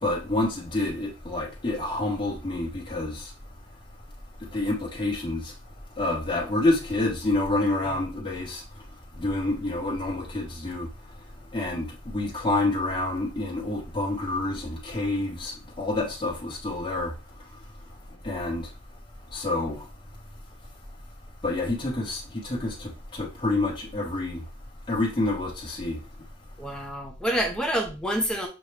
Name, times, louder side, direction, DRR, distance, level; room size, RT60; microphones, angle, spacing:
voice 1, 0.0-3.3 4.5-5.5 6.0-8.6 9.2-10.9 11.5-17.1 18.2-18.7 19.3-19.9 21.4-24.4 24.9-26.0, left 2 dB, 25° left, 1.1 m, -28 dB
voice 2, 26.6-28.5, equal, 5° left, 0.6 m, -28 dB
6.3 x 2.2 x 3.2 m
head